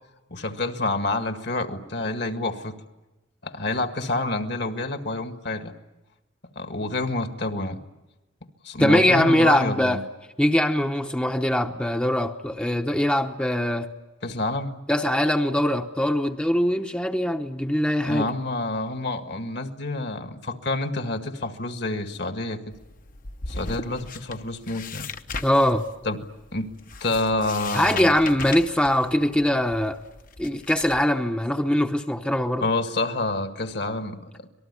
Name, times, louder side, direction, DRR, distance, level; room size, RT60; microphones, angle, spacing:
voice 1, 0.3-2.8 3.4-5.7 6.6-7.8 8.6-10.0 14.2-14.8 18.0-22.8 23.5-25.1 26.1-26.2 26.5-26.7 27.0-28.1 32.6-34.5, left 2 dB, 60° left, 7 dB, 1.9 m, -28 dB
voice 2, 8.8-10.0 10.4-13.9 14.9-18.3 25.4-25.8 27.7-30.0 30.4-32.7, left 1 dB, 5° left, 4 dB, 0.9 m, -22 dB
sound 1, 22.7-31.0, left 4 dB, 45° left, 1.0 m, -38 dB
26.0 x 19.5 x 9.8 m, 1.1 s
head